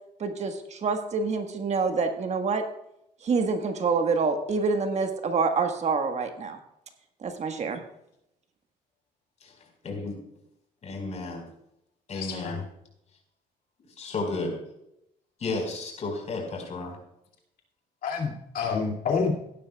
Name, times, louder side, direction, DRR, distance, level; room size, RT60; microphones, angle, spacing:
voice 1, 0.2-2.6 3.2-6.6 7.2-7.8, right 4 dB, 40° right, 6 dB, 1.4 m, -26 dB
voice 2, 9.8-10.2 10.8-11.4 12.1-12.6 14.0-14.6 15.4-17.0, left 3 dB, 40° left, 2 dB, 4.5 m, -32 dB
voice 3, 12.1-12.6 18.0-19.3, left 5 dB, 60° left, 0 dB, 2.5 m, -28 dB
16.0 x 11.5 x 2.3 m, 0.80 s
cardioid pair, 110°, 17 cm